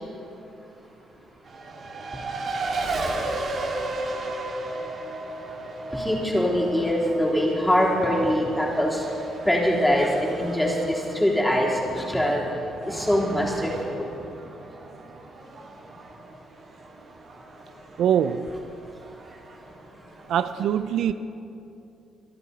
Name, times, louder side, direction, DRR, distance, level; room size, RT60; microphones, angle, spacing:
Race car auto racing, 1.4-20.6, right 2 dB, 55° right, 2.1 m, -35 dB
voice 1, 5.9-9.0 9.5-12.4 12.9-14.1, equal, 10° left, -3 dB, 3.6 m, -23 dB
voice 2, 18.0-18.5 20.3-21.1, right 9 dB, 75° right, 12 dB, 0.4 m, -23 dB
25.0 x 11.0 x 4.2 m, 2.7 s
cardioid pair, 90°, 0 cm